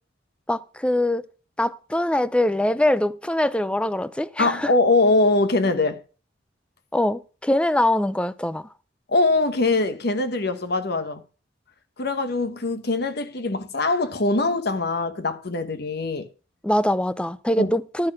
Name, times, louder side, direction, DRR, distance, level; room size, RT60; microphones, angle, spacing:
voice 1, 0.5-1.2 1.6-4.7 6.9-8.7 16.6-18.1, left 1 dB, 5° left, 0.5 m, -23 dB
voice 2, 4.4-6.0 9.1-11.2 12.0-16.3 17.6-17.7, left 2 dB, 60° left, 1.2 m, -22 dB
11.5 x 6.0 x 6.1 m
head